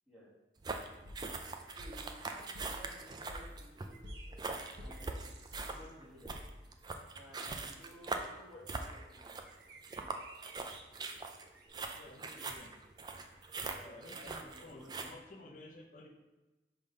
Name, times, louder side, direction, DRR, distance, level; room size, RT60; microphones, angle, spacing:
sound 1, 0.6-15.1, right 3 dB, 20° right, 0.3 m, -42 dB
sound 2, 1.0-6.9, left 1 dB, 80° right, 1.0 m, -50 dB
voice 1, 1.8-4.0 4.8-5.3 5.7-6.4 7.1-9.3 13.7-15.1, equal, 5° right, -9 dB, 1.9 m, -55 dB
sound 3, 3.9-5.9 9.4-10.8 11.5-11.7, right 4 dB, 65° right, 0.7 m, -57 dB
voice 2, 11.9-12.8 13.8-16.1, left 2 dB, 45° left, 2 dB, 0.7 m, -53 dB
5.2 x 3.4 x 5.4 m, 1.1 s
head